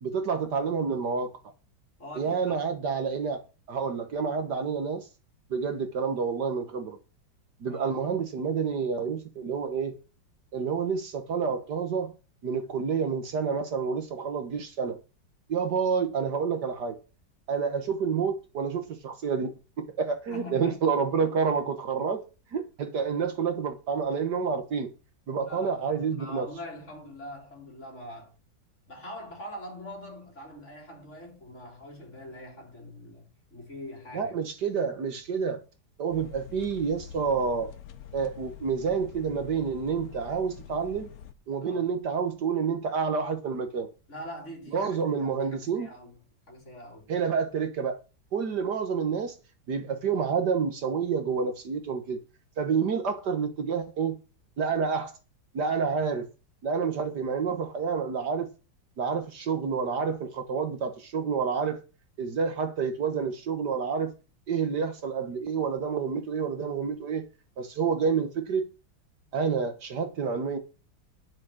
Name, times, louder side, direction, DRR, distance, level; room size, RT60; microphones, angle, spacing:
voice 1, 0.0-1.3 2.2-3.4 3.7-5.1 5.5-7.0 7.6-10.0 10.5-12.1 12.4-15.0 15.5-17.0 17.5-22.2 22.5-24.9 25.3-26.5 34.1-35.6 36.0-37.7 38.1-41.1 41.5-43.9 44.7-45.9 47.1-48.0 48.3-49.3 49.7-52.2 52.6-54.2 54.6-55.1 55.5-56.3 56.6-58.5 59.0-61.8 62.2-64.1 64.5-67.2 67.6-68.6 69.3-70.6, right 6 dB, 60° right, 1.9 m, -28 dB
voice 2, 2.0-2.6 7.7-8.0 20.3-20.7 25.4-28.4 28.9-34.3 41.5-41.9 44.1-47.1, left 1 dB, 35° left, 4.2 m, -43 dB
sound 1, 36.1-41.3, left 10 dB, 55° left, 1.3 m, -46 dB
10.5 x 7.2 x 6.5 m
omnidirectional pair, 2.0 m